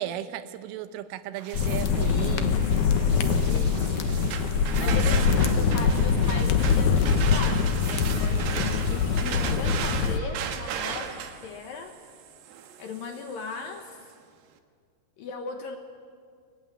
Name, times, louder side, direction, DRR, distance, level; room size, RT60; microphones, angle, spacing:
voice 1, 0.0-2.5 4.8-5.3, right 11 dB, 90° right, 12 dB, 3.5 m, -35 dB
sound 1, 1.4-9.2, right 6 dB, 50° right, 2.5 m, -46 dB
sound 2, 1.5-10.2, left 6 dB, 90° left, 1.7 m, -23 dB
voice 2, 2.0-4.3 4.8-12.0 12.8-14.1 15.2-15.8, left 5 dB, 70° left, 5 dB, 2.2 m, -38 dB
sound 3, 4.0-13.9, right 8 dB, 70° right, 3.0 m, -36 dB
23.5 x 20.5 x 9.9 m, 2.2 s
omnidirectional pair, 5.6 m